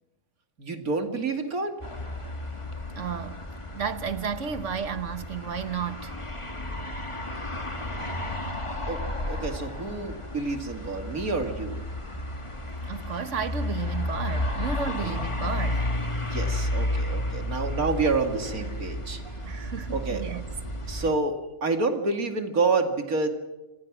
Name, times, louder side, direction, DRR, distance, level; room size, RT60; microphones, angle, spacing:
voice 1, 0.6-1.8 8.9-11.8 15.0-15.1 16.2-20.3 20.9-21.3 21.6-23.3, right 3 dB, 75° right, 2.8 m, -28 dB
sound 1, 1.8-21.1, left 1 dB, 20° left, 2.0 m, -32 dB
voice 2, 3.0-3.4 3.7-6.1 12.8-15.9 19.4-20.5 20.9-21.0, right 7 dB, 60° right, 1.4 m, -33 dB
27.5 x 24.5 x 6.2 m
omnidirectional pair, 1.5 m